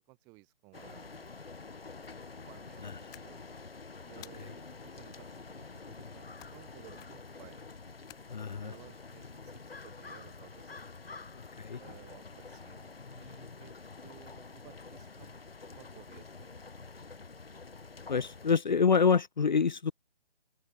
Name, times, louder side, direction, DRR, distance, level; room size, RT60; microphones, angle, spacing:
voice 1, 0.1-1.4 2.3-3.6 4.1-7.7 8.6-10.9 11.8-16.6, right 28 dB, 10° right, 1.4 m, -57 dB
sound 1, 0.7-18.6, left 4 dB, 65° left, 4.5 m, -48 dB
sound 2, 3.1-3.7 4.2-4.8 6.4-6.7 7.0-7.4 8.1-8.8, left 17 dB, 10° left, 3.3 m, -55 dB
voice 2, 8.3-8.7 11.4-11.8 18.1-19.9, left 5 dB, 45° left, 0.8 m, -27 dB
figure-of-eight pair, 150°, 32 cm